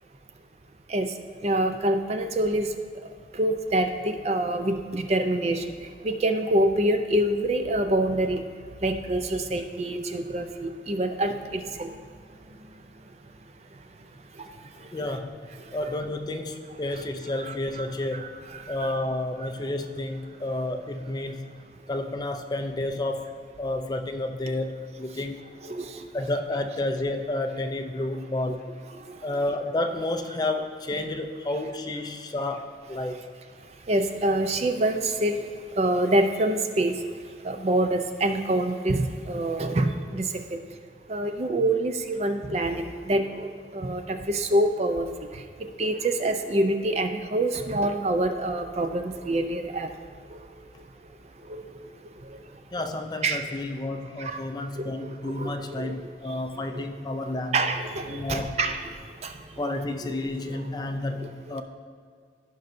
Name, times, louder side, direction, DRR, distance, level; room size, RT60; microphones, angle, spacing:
voice 1, 1.4-2.7 3.3-5.6 6.0-8.4 8.8-11.9 17.5-17.9 18.1-18.9 25.6-26.0 33.9-35.4 35.8-37.0 37.4-40.3 41.1-43.5 43.7-45.1 45.8-49.9 51.5-51.6 53.2-53.4 54.2-54.4 54.8-55.0 55.3-55.9 56.7-56.9 57.3-58.8 59.2-59.3 59.6-60.1 60.5-60.6, right 1 dB, 35° right, 7 dB, 0.4 m, -26 dB
voice 2, 14.9-15.4 15.7-18.4 18.7-23.3 23.6-25.5 26.1-28.7 29.2-33.2 52.7-57.6 58.1-58.5 59.6-61.6, left 2 dB, 20° left, 6 dB, 0.4 m, -31 dB
15.0 x 5.3 x 2.6 m, 2.1 s
head